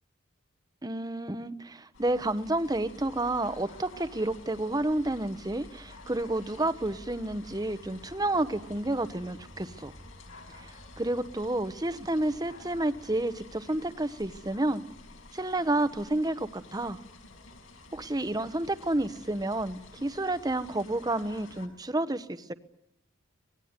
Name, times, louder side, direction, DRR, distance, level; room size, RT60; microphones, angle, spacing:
voice 1, 0.8-9.9 10.6-14.8 15.3-17.0 17.9-22.5, right 1 dB, 20° right, 12 dB, 1.0 m, -30 dB
sound 1, 1.9-21.7, left 2 dB, 80° left, 5.8 m, -50 dB
25.0 x 20.0 x 9.6 m, 0.87 s
head